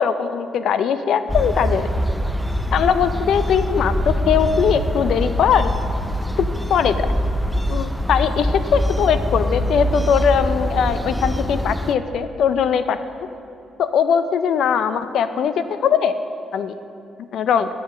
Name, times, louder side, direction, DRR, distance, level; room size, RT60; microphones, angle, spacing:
voice 1, 0.0-1.9 2.7-3.9 4.3-5.7 6.7-7.1 7.7-13.0 13.8-16.1 16.5-16.7 17.3-17.7, left 7 dB, 70° left, 11 dB, 0.4 m, -20 dB
sound 1, 1.3-11.9, equal, ahead, 0.4 m, -23 dB
8.8 x 5.1 x 6.0 m, 2.7 s
cardioid pair, 90°, 0 cm